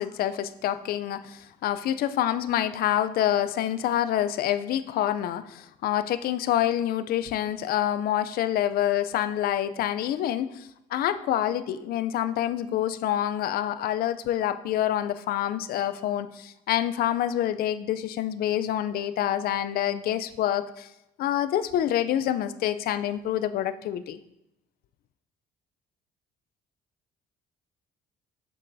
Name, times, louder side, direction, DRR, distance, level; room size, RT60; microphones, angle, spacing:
voice 1, 0.0-20.9 21.2-24.2, left 11 dB, 65° left, 13 dB, 0.4 m, -27 dB
7.2 x 6.7 x 2.6 m, 0.88 s
cardioid pair, 110°, 17 cm